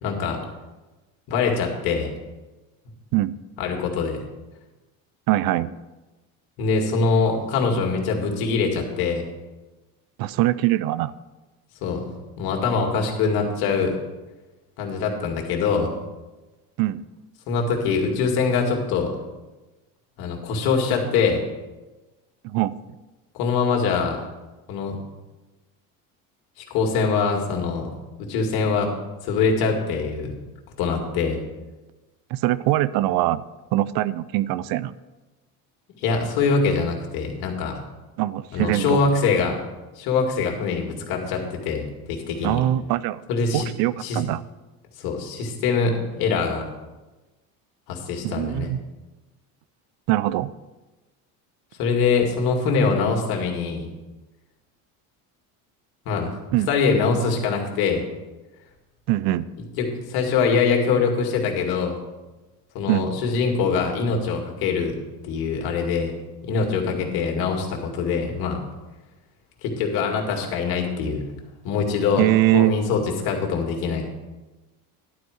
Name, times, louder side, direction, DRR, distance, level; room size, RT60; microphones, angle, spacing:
voice 1, 0.0-0.4 1.3-2.1 3.6-4.2 6.6-9.2 11.8-13.9 14.8-15.9 17.5-19.2 20.2-21.4 23.3-24.2 24.7-25.0 26.6-27.9 28.2-28.9 29.2-30.3 30.8-31.4 36.0-37.8 38.5-39.6 40.0-42.6 43.3-43.7 44.0-44.2 45.0-46.6 47.9-48.7 51.8-53.9 56.1-56.3 56.7-58.0 59.8-62.0 62.7-65.0 65.2-66.1 66.4-68.6 69.6-71.2 71.6-72.2 72.5-74.1, left 5 dB, 70° left, 1 dB, 2.2 m, -23 dB
voice 2, 5.3-5.7 10.2-11.1 16.8-17.0 22.4-22.7 32.3-33.4 33.7-34.9 38.2-39.0 42.4-43.2 43.5-44.4 48.2-48.8 50.1-50.5 56.5-56.7 59.1-59.5 62.9-63.1 72.2-72.7, right 15 dB, 65° right, 18 dB, 0.5 m, -22 dB
11.5 x 4.7 x 7.8 m, 1.1 s
cardioid pair, 125°, 38 cm